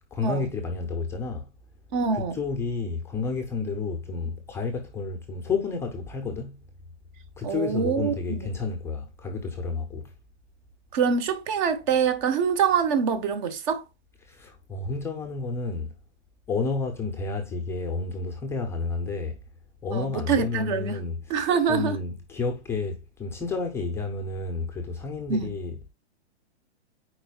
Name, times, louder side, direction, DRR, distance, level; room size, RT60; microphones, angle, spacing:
voice 1, 0.1-1.5 2.1-6.6 7.4-10.1 14.2-15.9 16.5-19.4 19.8-25.9, left 4 dB, 5° left, 0.6 m, -31 dB
voice 2, 1.9-2.4 7.4-8.4 10.9-13.8 19.9-21.0 21.3-22.0 25.3-25.5, right 6 dB, 40° right, 1.3 m, -25 dB
8.7 x 4.6 x 2.3 m
hypercardioid pair, 150°, 35 cm